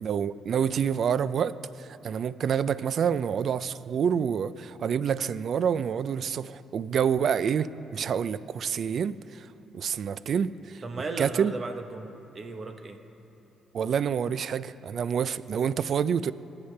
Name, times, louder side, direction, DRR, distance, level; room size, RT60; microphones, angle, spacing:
voice 1, 0.0-9.5 9.7-10.8 11.2-11.5 13.7-16.3, right 7 dB, 60° right, 16 dB, 0.3 m, -27 dB
voice 2, 10.8-13.0, right 3 dB, 35° right, 7 dB, 0.9 m, -36 dB
20.0 x 8.2 x 3.2 m, 3.0 s
cardioid pair, 90°, 0 cm